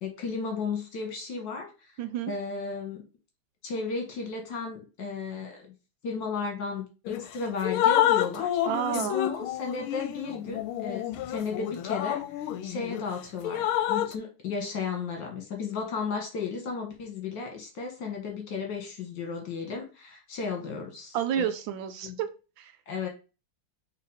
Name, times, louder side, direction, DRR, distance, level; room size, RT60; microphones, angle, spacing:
voice 1, 0.0-1.7 2.3-3.0 3.6-5.7 6.0-8.5 8.9-21.5 22.0-22.2 22.9-23.1, left 5 dB, 60° left, 3 dB, 2.1 m, -34 dB
voice 2, 2.0-2.3 8.7-9.3 21.1-22.3 22.6-22.7, right 9 dB, 75° right, 9 dB, 1.3 m, -30 dB
Drip, 7.1-7.3 7.6-13.0 13.4-14.1, left 12 dB, 85° left, 1.5 m, -28 dB
5.8 x 3.4 x 4.9 m, 0.32 s
omnidirectional pair, 2.3 m